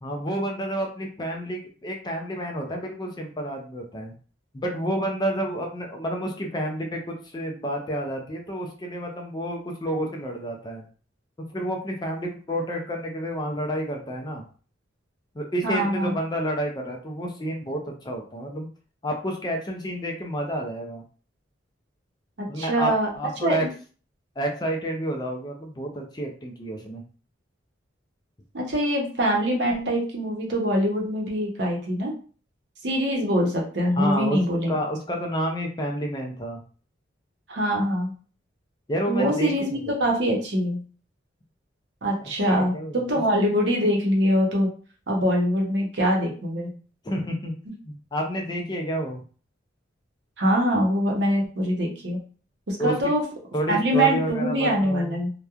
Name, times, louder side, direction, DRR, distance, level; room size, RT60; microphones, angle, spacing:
voice 1, 0.0-4.1 4.5-10.8 11.5-14.4 15.4-18.7 19.0-21.0 22.5-23.7 24.4-27.0 34.0-34.4 34.7-36.6 38.9-39.7 42.4-43.0 47.0-47.5 47.9-49.2 52.8-52.9 53.5-55.2, equal, 20° left, 1 dB, 0.4 m, -29 dB
voice 2, 15.6-16.2 22.6-23.1 23.4-23.7 28.5-32.1 32.8-34.8 37.5-38.1 39.1-40.8 42.0-44.7 45.1-46.7 50.4-52.2 52.7-53.2 53.7-55.3, equal, 60° right, 0 dB, 0.7 m, -23 dB
2.9 x 2.1 x 2.3 m, 0.39 s
head